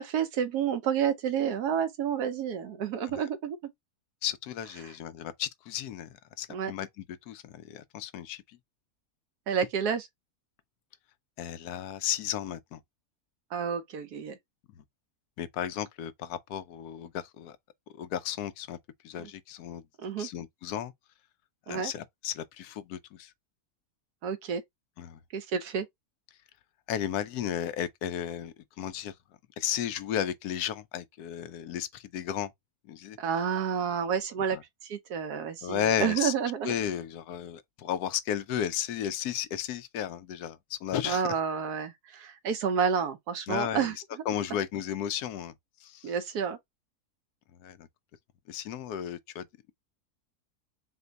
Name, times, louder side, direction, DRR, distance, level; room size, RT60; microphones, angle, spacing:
voice 1, 0.0-3.6 4.8-4.9 6.5-6.7 9.5-10.1 13.5-14.4 19.2-19.3 20.0-20.3 21.7-21.9 24.2-24.6 25.3-25.9 33.2-34.6 34.8-36.7 41.0-44.0 46.0-46.6, right 7 dB, 80° right, 1.3 m, -30 dB
voice 2, 4.2-6.1 6.4-8.4 11.4-12.8 14.8-14.9 15.4-17.6 17.9-18.8 19.0-19.8 20.2-20.9 21.7-23.3 25.0-25.2 26.9-29.1 29.6-32.5 32.9-33.2 34.5-34.6 35.6-36.3 36.6-41.3 43.5-43.9 44.3-45.5 45.8-46.1 47.6-47.9 48.5-49.5, left 10 dB, 80° left, 1.1 m, -34 dB
4.3 x 2.2 x 3.9 m
omnidirectional pair, 1.6 m